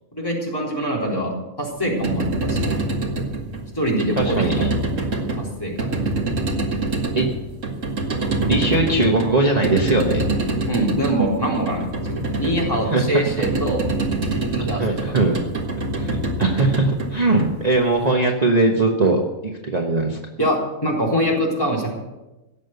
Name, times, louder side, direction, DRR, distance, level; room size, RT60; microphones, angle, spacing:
voice 1, 0.1-2.7 3.7-4.4 5.0-6.0 10.7-13.8 14.3-15.3 20.4-21.9, right 1 dB, 15° left, -3 dB, 3.8 m, -24 dB
sound 1, 1.8-18.0, right 2 dB, 65° right, 2.1 m, -25 dB
voice 2, 4.2-4.7 7.1-7.3 8.4-10.2 12.9-13.2 14.8-15.4 16.0-20.2, right 2 dB, 30° right, 1 dB, 1.3 m, -20 dB
17.0 x 7.6 x 8.0 m, 1.0 s
omnidirectional pair, 1.4 m